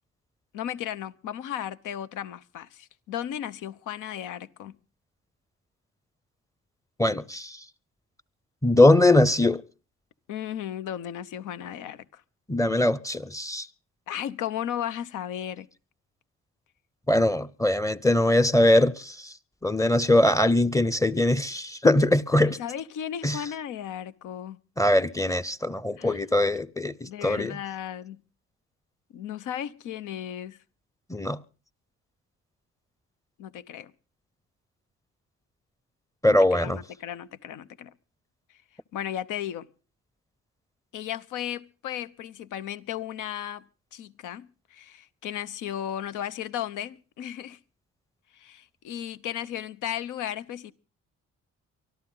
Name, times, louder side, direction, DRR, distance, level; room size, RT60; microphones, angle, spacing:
voice 1, 0.5-4.7 10.3-12.2 14.1-15.7 22.4-24.6 26.0-26.3 27.0-28.2 29.1-30.6 33.4-33.9 36.2-37.9 38.9-39.7 40.9-43.6 43.9-47.6 48.3-50.7, left 10 dB, 90° left, 1.0 m, -35 dB
voice 2, 7.0-7.6 8.6-9.6 12.5-13.7 17.1-19.3 19.6-22.6 23.2-23.4 24.8-27.6 31.1-31.4 36.2-36.8, left 1 dB, 10° left, 0.7 m, -21 dB
24.0 x 13.5 x 3.9 m
cardioid pair, 90°, 30 cm